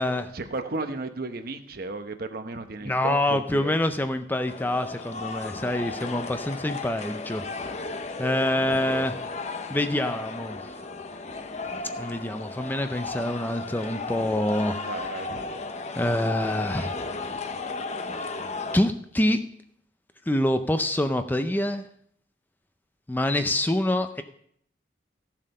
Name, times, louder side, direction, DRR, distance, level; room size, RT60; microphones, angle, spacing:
voice 1, 0.0-3.8 8.7-9.1 14.8-15.5, right 3 dB, 55° right, 8 dB, 0.9 m, -34 dB
voice 2, 2.9-7.4 8.2-9.1 9.7-10.6 12.0-14.8 16.0-17.0 18.7-19.5 20.3-21.8 23.1-24.2, left 1 dB, 10° left, 8 dB, 0.5 m, -26 dB
sound 1, 4.5-18.8, left 3 dB, 40° left, 0.8 m, -35 dB
14.0 x 7.5 x 5.4 m, 0.68 s
head